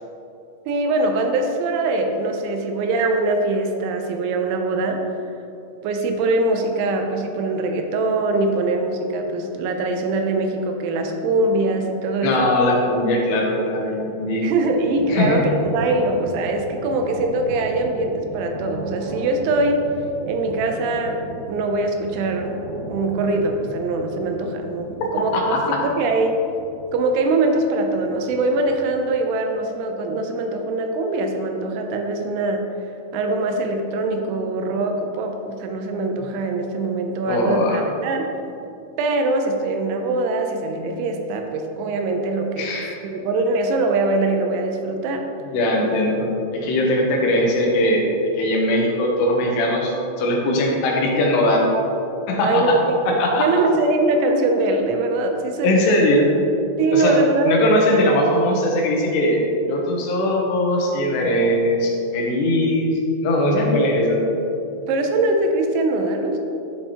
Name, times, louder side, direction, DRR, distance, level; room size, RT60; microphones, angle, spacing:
voice 1, 0.7-5.0 5.8-12.5 14.4-19.9 20.3-22.6 22.9-26.5 26.9-32.7 33.1-38.3 39.0-42.7 43.0-45.3 52.4-55.8 56.8-57.6 64.9-66.4, right 2 dB, 80° right, 4 dB, 2.9 m, -22 dB
voice 2, 12.2-14.5 15.1-15.4 25.3-25.4 25.7-25.8 37.3-37.8 42.6-43.0 45.5-48.1 48.4-51.7 52.3-52.8 53.2-53.5 55.6-56.3 56.9-64.3, left 1 dB, 75° left, -1 dB, 2.8 m, -20 dB
sound 1, 14.6-29.0, equal, 60° right, 2.1 m, -36 dB
11.5 x 5.6 x 2.9 m, 2.8 s
omnidirectional pair, 5.5 m